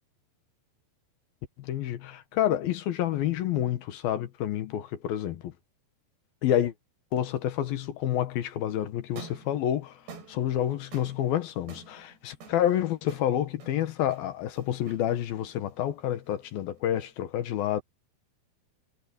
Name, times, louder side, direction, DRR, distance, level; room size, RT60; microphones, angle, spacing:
voice 1, 1.6-5.5 6.4-6.7 7.1-10.0 10.3-17.8, left 11 dB, 70° left, 2.9 m, -29 dB
sound 1, 9.0-17.3, right 4 dB, 75° right, 6.5 m, -50 dB
omnidirectional pair, 4.8 m